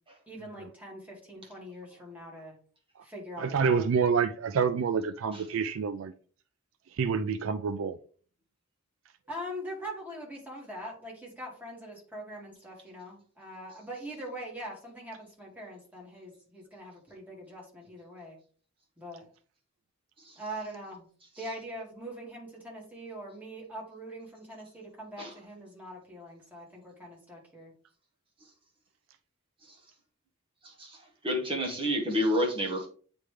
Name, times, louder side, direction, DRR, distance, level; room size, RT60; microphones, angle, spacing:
voice 1, 0.3-2.6 3.0-3.9 9.3-18.4 19.0-19.2 20.4-21.1 21.4-27.7, equal, 10° right, 2.1 m, -42 dB
voice 2, 3.4-6.1 7.0-8.0, right 6 dB, 70° right, 0.4 m, -27 dB
voice 3, 30.6-32.9, equal, 25° right, 1.1 m, -30 dB
8.8 x 3.4 x 3.3 m
head